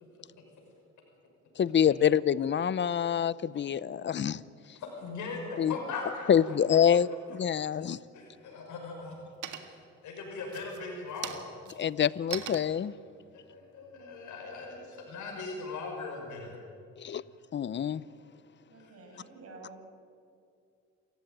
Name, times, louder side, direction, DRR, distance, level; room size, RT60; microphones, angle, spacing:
voice 1, 1.6-4.4 5.6-5.7 6.3-8.0 11.8-12.9 17.0-17.2 17.5-18.0, left 8 dB, 40° left, 19 dB, 0.6 m, -26 dB
voice 2, 4.8-6.6 7.8-7.9 8.1-9.2 9.4-9.7 10.0-11.4 13.3-16.6 18.8-18.9, left 4 dB, 80° left, 1 dB, 5.7 m, -39 dB
sound 1, 7.8-8.3 8.8-9.2 9.4-10.0 10.4-14.9, right 10 dB, 85° right, 1.8 m, -43 dB
voice 3, 18.7-19.9, right 3 dB, 50° right, 1 dB, 6.9 m, -49 dB
28.0 x 15.5 x 9.3 m, 2.4 s
cardioid pair, 100°, 30 cm